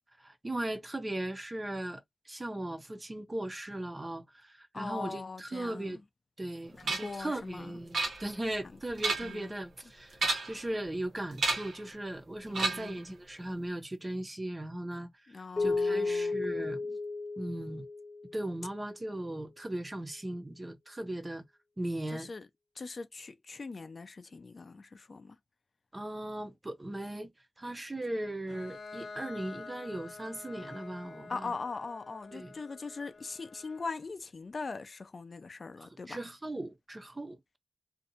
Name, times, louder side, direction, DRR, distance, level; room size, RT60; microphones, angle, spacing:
voice 1, 0.2-6.0 6.4-16.8 17.4-17.9 18.3-21.4 21.8-22.3 25.9-27.3 27.6-31.5 32.3-32.5 35.8-37.6, right 1 dB, 25° right, 0.5 m, -38 dB
voice 2, 4.7-6.0 6.8-7.8 9.2-9.5 12.5-13.0 15.3-17.0 22.1-22.5 22.8-25.4 31.3-36.2, left 4 dB, 55° left, 0.4 m, -41 dB
sound 1, 6.9-7.2 7.9-8.5 8.9-9.5 10.1-10.7 11.4-11.8 12.5-13.0, right 3 dB, 85° right, 0.8 m, -32 dB
Keyboard (musical), 15.6-18.5, left 3 dB, 25° left, 0.7 m, -33 dB
Bowed string instrument, 28.5-34.1, left 4 dB, 80° left, 0.9 m, -48 dB
2.6 x 2.1 x 2.7 m
cardioid pair, 70°, 0 cm